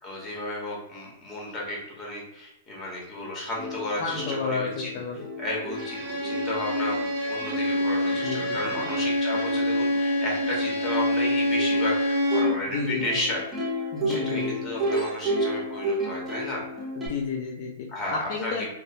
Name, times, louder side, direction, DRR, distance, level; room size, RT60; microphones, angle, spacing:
voice 1, 0.0-4.9 5.4-12.0 12.3-13.5 14.1-16.6 17.9-18.7, left 1 dB, 20° left, -3 dB, 1.2 m, -33 dB
Plucked string instrument, 3.2-3.3 3.6-17.1, right 1 dB, 10° right, 0.6 m, -33 dB
voice 2, 4.0-5.2 8.2-8.9 12.7-13.2 13.9-14.6 17.0-18.7, left 5 dB, 50° left, 0 dB, 0.4 m, -31 dB
Bowed string instrument, 5.7-12.7, left 1 dB, 40° right, 1.1 m, -26 dB
2.6 x 2.0 x 2.8 m, 0.88 s
hypercardioid pair, 120°, 0 cm